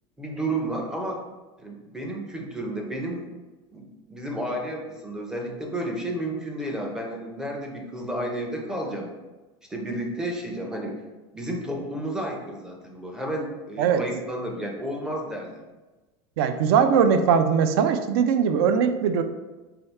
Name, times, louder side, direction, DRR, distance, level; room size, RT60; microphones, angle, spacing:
voice 1, 0.2-1.2 1.6-3.3 3.7-9.1 9.7-11.0 11.3-15.6, right 1 dB, 5° right, 0 dB, 0.4 m, -31 dB
voice 2, 16.4-19.2, right 7 dB, 70° right, 9 dB, 0.4 m, -20 dB
3.3 x 2.3 x 4.2 m, 1.2 s
supercardioid pair, 155°, 13 cm